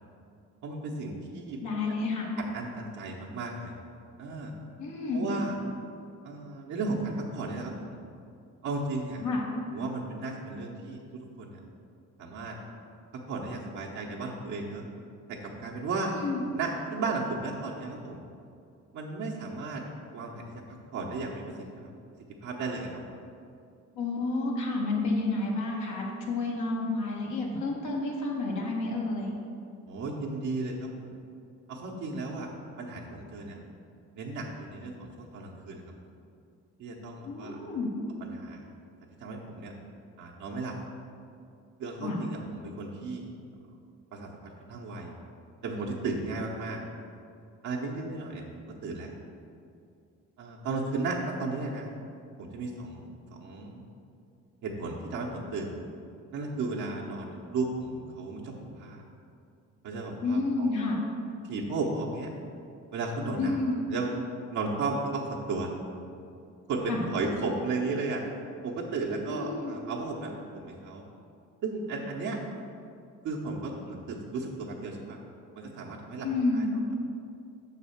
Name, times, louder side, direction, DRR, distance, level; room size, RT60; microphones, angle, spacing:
voice 1, 0.6-1.6 2.4-3.7 4.2-4.5 5.1-5.6 6.2-8.0 8.6-9.2 9.7-11.6 12.2-12.6 13.3-14.9 15.3-16.2 16.6-18.2 18.9-19.8 20.1-20.6 20.9-21.9 22.4-22.9 29.9-31.2 31.7-32.5 32.8-33.6 34.1-35.8 36.8-37.6 38.2-38.6 39.2-39.7 40.2-40.7 41.8-43.3 44.1-44.3 44.7-45.1 45.6-46.8 47.6-49.1 50.4-51.9 52.4-53.9 54.6-55.7 56.3-59.0 59.8-60.9 61.4-62.3 62.9-63.6 63.9-64.1 64.5-65.7 66.7-68.2 68.6-71.0 71.6-72.4 73.2-75.2 75.6-76.3 76.5-76.6, right 3 dB, 75° right, -3 dB, 0.9 m, -34 dB
voice 2, 1.6-2.3 4.8-5.3 9.2-9.4 16.1-16.4 24.0-29.3 37.2-37.9 42.0-42.2 60.2-61.0 63.4-63.8 66.9-67.0 69.3-69.7 76.2-76.7, left 3 dB, 85° left, -2 dB, 1.4 m, -30 dB
6.2 x 4.1 x 5.7 m, 2.5 s
cardioid pair, 90°, 30 cm